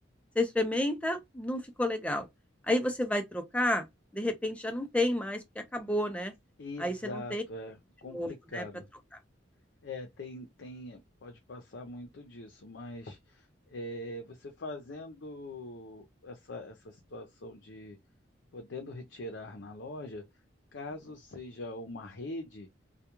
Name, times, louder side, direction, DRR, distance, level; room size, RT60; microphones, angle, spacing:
voice 1, 0.4-2.3 2.7-3.9 4.1-6.3 6.8-7.4 8.1-8.6, left 1 dB, 5° left, 0.5 m, -30 dB
voice 2, 6.6-8.9 9.8-18.0 18.5-20.2 20.7-22.7, left 1 dB, 70° left, 0.6 m, -43 dB
2.3 x 2.2 x 2.9 m
head